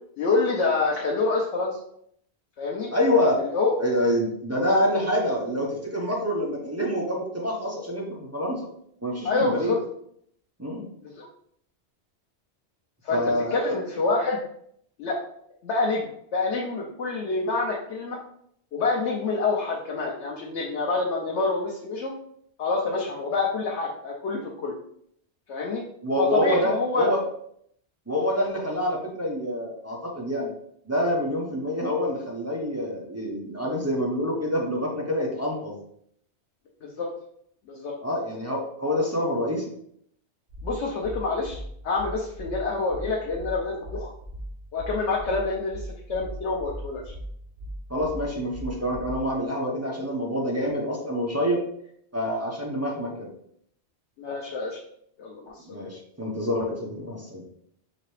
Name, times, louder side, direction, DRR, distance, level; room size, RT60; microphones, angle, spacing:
voice 1, 0.2-1.8 2.6-2.9 3.4-3.7 9.2-9.8 11.0-11.3 13.0-13.2 13.5-14.4 15.0-15.2 15.6-18.2 18.7-22.1 22.6-24.7 25.5-25.8 26.2-27.1 36.8-37.1 37.7-37.9 40.6-44.1 44.7-47.1 54.2-54.8 55.2-55.8, left 3 dB, 90° left, -3 dB, 1.0 m, -27 dB
voice 2, 2.9-3.4 3.8-8.7 9.0-9.8 10.6-10.8 13.1-13.8 26.0-27.2 28.1-30.5 30.9-35.8 38.0-39.7 47.9-51.7 52.1-53.3 55.7-57.4, equal, 15° right, -3 dB, 0.7 m, -26 dB
sound 1, 40.5-49.5, equal, 60° right, 1.3 m, -38 dB
5.0 x 2.8 x 3.1 m, 0.68 s
omnidirectional pair, 1.1 m